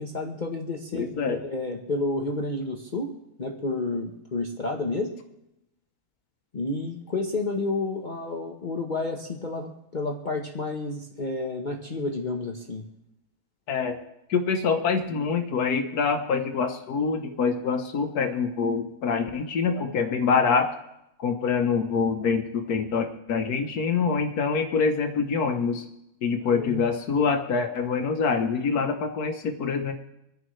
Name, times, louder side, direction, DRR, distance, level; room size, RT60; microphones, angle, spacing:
voice 1, 0.0-3.1 3.4-5.1 6.5-12.8 26.5-26.8, left 2 dB, 35° left, 1 dB, 1.2 m, -30 dB
voice 2, 0.9-1.4 13.7-14.0 14.3-20.7 21.2-25.9 26.2-29.9, left 5 dB, 80° left, 5 dB, 1.5 m, -25 dB
26.0 x 10.5 x 3.2 m, 0.86 s
omnidirectional pair, 1.6 m